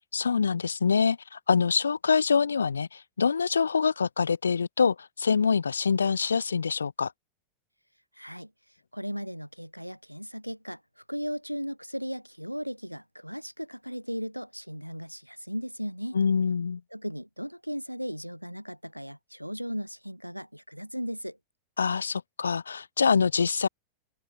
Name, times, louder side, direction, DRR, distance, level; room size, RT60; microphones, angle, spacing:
voice 1, 0.1-7.1 16.1-16.8 21.8-23.7, left 5 dB, 75° left, 1.7 m, -25 dB
voice 2, 8.1-8.5 8.9-16.2 16.9-21.4, equal, 90° right, 1.7 m, -36 dB
figure-of-eight pair, 90°, 0 cm